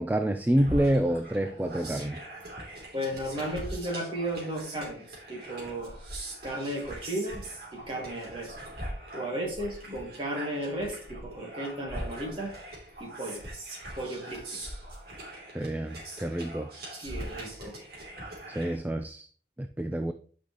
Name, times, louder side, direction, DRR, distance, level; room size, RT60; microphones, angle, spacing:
voice 1, 0.0-2.2 15.5-16.7 18.5-19.3 19.6-20.1, right 1 dB, 10° right, 0.3 m, -28 dB
sound 1, 0.6-18.8, right 1 dB, 60° right, 2.8 m, -41 dB
voice 2, 2.9-5.9 6.4-7.5 7.7-8.6 9.1-12.5 13.0-13.4 14.0-14.6 17.0-17.8, right 1 dB, 30° right, 2.0 m, -34 dB
9.1 x 5.5 x 2.9 m
head